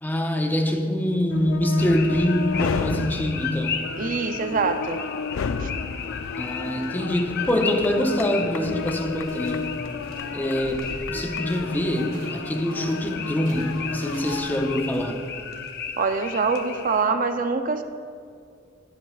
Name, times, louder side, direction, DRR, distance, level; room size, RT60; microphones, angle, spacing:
voice 1, 0.0-3.8 6.4-9.7 10.3-15.2, left 1 dB, 10° left, 4 dB, 0.6 m, -24 dB
sound 1, 1.3-14.8, left 5 dB, 85° left, 0.4 m, -33 dB
sound 2, 1.8-17.0, left 6 dB, 55° left, 0.7 m, -36 dB
voice 2, 4.0-5.0 5.6-5.7 16.0-17.8, right 4 dB, 45° right, 8 dB, 0.5 m, -24 dB
sound 3, 9.0-15.3, right 1 dB, 90° right, 2.2 m, -45 dB
20.5 x 7.5 x 2.3 m, 2.2 s
head